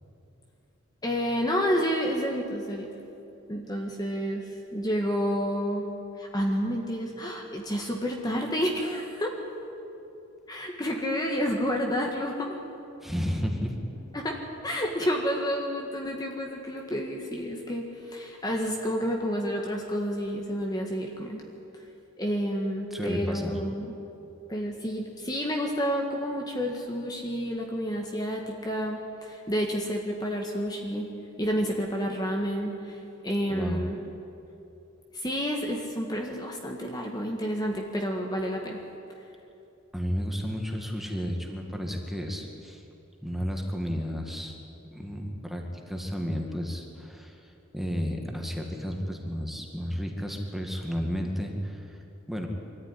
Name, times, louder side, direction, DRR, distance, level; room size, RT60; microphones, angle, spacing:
voice 1, 1.0-2.9 3.5-9.4 10.5-12.6 14.1-14.4 14.6-21.4 22.2-24.0 24.5-31.1 31.4-34.0 35.1-38.8, equal, 20° left, 1 dB, 1.8 m, -30 dB
voice 2, 13.0-13.8 22.9-23.6 33.5-33.8 39.9-42.8 43.2-44.5 44.9-52.0 52.3-52.5, equal, ahead, 2 dB, 2.2 m, -32 dB
23.5 x 14.0 x 9.9 m, 2.8 s
head